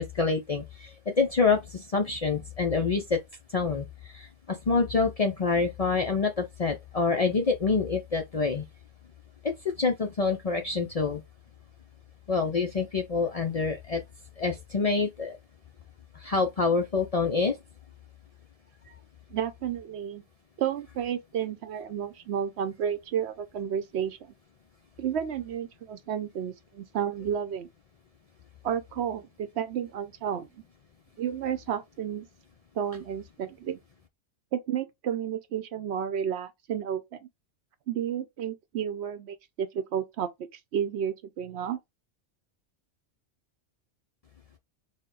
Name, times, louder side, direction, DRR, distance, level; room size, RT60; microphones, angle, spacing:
voice 1, 0.0-3.2 3.5-3.9 4.1-8.7 9.8-11.2 12.3-14.0 14.4-15.4 16.2-17.6, left 4 dB, 50° left, 0.5 m, -26 dB
voice 2, 19.3-20.2 20.6-24.3 25.0-27.7 28.6-30.5 31.2-32.3 32.8-33.8 34.5-37.3 37.9-40.3 40.7-41.8, right 9 dB, 70° right, 0.9 m, -31 dB
4.2 x 2.2 x 3.7 m
omnidirectional pair, 1.2 m